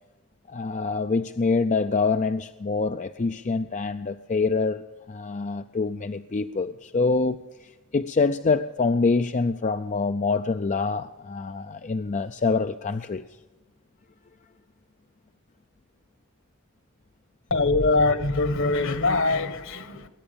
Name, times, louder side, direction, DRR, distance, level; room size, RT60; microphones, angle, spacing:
voice 1, 0.5-4.8 5.1-13.2, left 4 dB, 35° left, 9 dB, 0.4 m, -25 dB
voice 2, 17.5-20.1, left 3 dB, 60° left, 12 dB, 1.4 m, -23 dB
21.0 x 9.7 x 7.0 m, 1.2 s
head